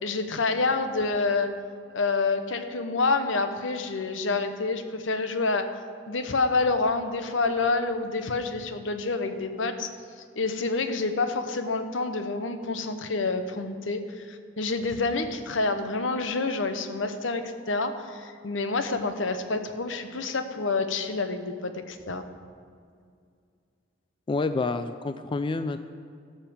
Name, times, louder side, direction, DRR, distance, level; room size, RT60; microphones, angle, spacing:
voice 1, 0.0-1.5 1.9-5.7 6.1-9.9 10.3-22.2, left 3 dB, 80° left, 8 dB, 0.9 m, -28 dB
voice 2, 24.3-25.9, left 3 dB, 25° left, 10 dB, 0.3 m, -28 dB
16.0 x 5.7 x 7.1 m, 2.2 s
head